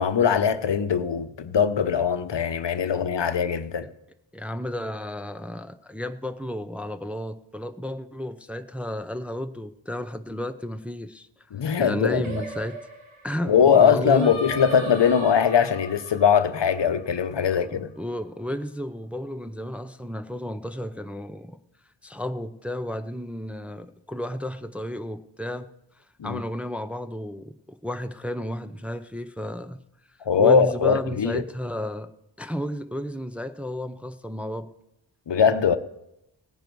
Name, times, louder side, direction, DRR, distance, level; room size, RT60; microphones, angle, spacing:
voice 1, 0.0-3.9 11.5-12.2 13.5-17.9 26.2-26.4 30.2-31.4 35.3-35.8, left 7 dB, 65° left, 0.8 m, -21 dB
voice 2, 4.3-11.3 11.8-12.8 13.2-14.3 17.6-21.6 22.0-25.7 26.2-29.8 30.4-32.1 32.4-34.7, left 1 dB, 5° right, 0.6 m, -32 dB
Singing, 12.2-17.5, right 1 dB, 85° right, 2.2 m, -38 dB
17.0 x 10.0 x 4.6 m
wide cardioid pair, 60°, 47 cm